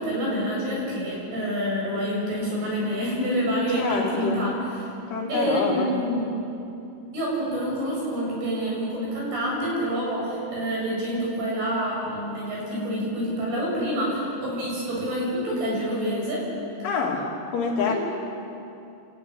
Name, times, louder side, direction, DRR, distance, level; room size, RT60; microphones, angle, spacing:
voice 1, 0.0-4.5 5.3-6.3 7.1-16.5 17.9-18.0, equal, 55° right, -4 dB, 9.8 m, -27 dB
voice 2, 3.8-4.5 5.1-5.9 16.8-17.9, left 5 dB, 75° left, -2 dB, 5.4 m, -26 dB
29.5 x 14.0 x 10.0 m, 2.7 s
omnidirectional pair, 5.5 m